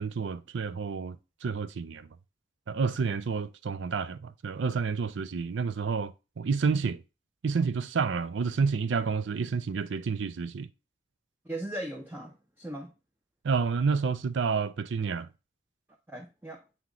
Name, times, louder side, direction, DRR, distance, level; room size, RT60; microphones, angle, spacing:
voice 1, 0.0-2.1 2.7-7.0 7.4-10.7 13.4-15.3, right 5 dB, 80° right, 0.4 m, -29 dB
voice 2, 11.4-12.9 16.1-16.6, right 1 dB, 10° right, 0.7 m, -38 dB
8.4 x 3.0 x 3.8 m
head